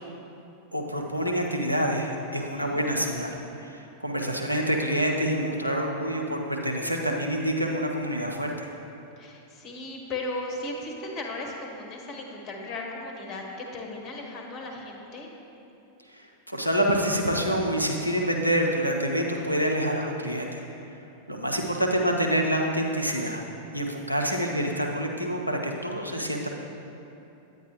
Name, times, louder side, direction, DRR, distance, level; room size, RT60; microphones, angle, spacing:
voice 1, 0.7-3.4 3.6-8.7 16.1-16.2 16.5-20.6 21.3-23.4 23.7-26.5, equal, 90° right, 1 dB, 0.7 m, -27 dB
voice 2, 2.6-3.0 9.2-15.3 21.6-22.2, left 2 dB, 35° left, 1 dB, 1.3 m, -37 dB
9.2 x 9.1 x 3.1 m, 2.8 s
figure-of-eight pair, 90°, 0 cm